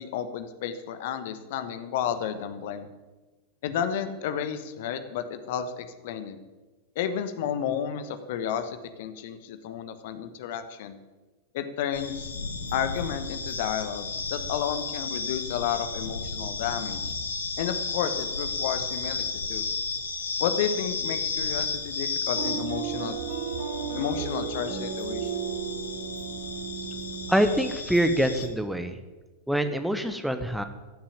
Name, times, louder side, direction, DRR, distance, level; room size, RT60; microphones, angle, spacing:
voice 1, 0.0-2.9 3.6-6.4 6.9-11.0 11.5-12.3 12.7-17.1 17.6-19.6 20.4-23.2 23.9-25.4, left 8 dB, 50° left, 10 dB, 1.2 m, -32 dB
sound 1, 11.9-28.5, left 4 dB, 75° left, 1.5 m, -33 dB
sound 2, 22.4-27.7, right 7 dB, 60° right, 2.2 m, -34 dB
voice 2, 27.3-28.9 29.5-30.6, equal, ahead, 8 dB, 1.1 m, -25 dB
15.0 x 7.3 x 8.9 m, 1.2 s
figure-of-eight pair, 90°, 0 cm